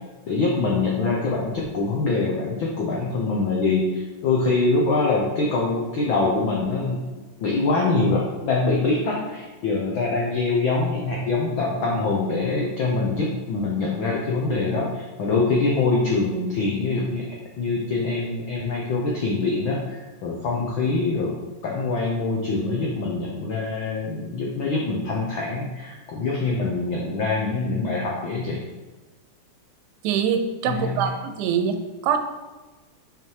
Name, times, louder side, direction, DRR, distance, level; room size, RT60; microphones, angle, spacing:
voice 1, 0.3-7.0 7.4-17.3 17.6-21.3 21.6-28.6 30.7-31.1, left 3 dB, 85° left, -2 dB, 1.1 m, -24 dB
voice 2, 30.0-31.8 32.0-32.2, right 7 dB, 85° right, 8 dB, 2.1 m, -23 dB
5.8 x 5.3 x 4.6 m, 1.2 s
omnidirectional pair, 3.4 m